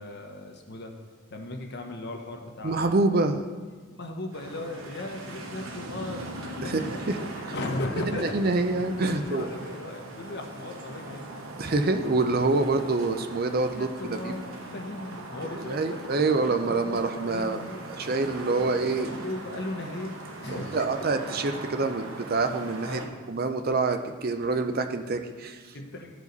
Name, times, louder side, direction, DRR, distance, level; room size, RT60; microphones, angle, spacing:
voice 1, 0.0-3.0 3.9-8.4 9.0-11.2 12.7-12.9 13.7-17.0 17.3-17.9 18.5-21.0 22.9-23.2 25.7-26.1, left 2 dB, 50° left, 3 dB, 1.0 m, -37 dB
voice 2, 2.6-3.4 6.6-6.7 7.1-7.2 8.2-9.5 11.6-14.3 15.7-17.6 18.0-19.1 20.5-23.0 23.3-25.6, right 3 dB, 40° right, 7 dB, 0.5 m, -26 dB
sound 1, 4.3-23.1, right 2 dB, 60° right, 1.1 m, -40 dB
14.5 x 4.9 x 4.0 m, 1.5 s
head